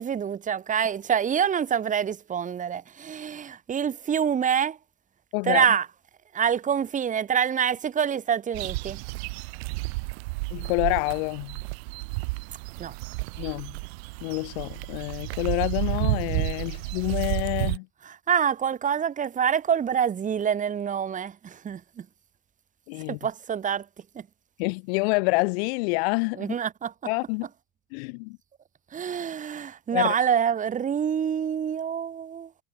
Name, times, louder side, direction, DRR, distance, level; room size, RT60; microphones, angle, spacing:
voice 1, 0.0-4.8 5.4-5.9 6.3-9.0 12.8-12.9 18.0-22.1 23.1-23.9 24.1-24.2 26.4-26.9 28.9-32.5, right 8 dB, 20° right, 2.4 m, -26 dB
voice 2, 5.3-5.6 10.5-11.6 13.4-13.8 14.2-17.9 22.9-23.2 24.6-26.5 27.0-27.5 27.9-28.4 29.9-30.1, left 31 dB, 65° left, 1.3 m, -27 dB
sound 1, 8.5-17.8, right 28 dB, 65° right, 1.0 m, -31 dB
supercardioid pair, 135°, 34 cm